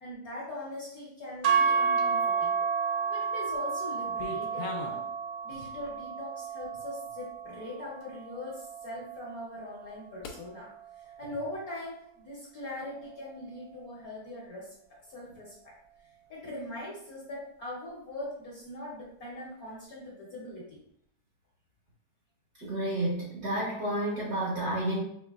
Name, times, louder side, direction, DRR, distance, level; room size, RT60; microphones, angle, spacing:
voice 1, 0.0-2.7 3.1-5.0 5.4-10.7 11.0-14.7 15.1-15.7 16.3-20.8, left 1 dB, 55° left, -5 dB, 1.1 m, -41 dB
sound 1, 1.4-9.7, right 5 dB, 70° right, 1.3 m, -31 dB
sound 2, 2.0-2.4 3.0-3.6 3.8-5.1 5.5-6.0 6.6-6.7 7.3-7.4 8.0-8.1 10.2-10.4, left 5 dB, 85° left, 1.5 m, -42 dB
voice 2, 22.6-25.0, right 1 dB, 50° right, -5 dB, 1.3 m, -30 dB
5.2 x 3.0 x 2.4 m, 0.71 s
omnidirectional pair, 2.4 m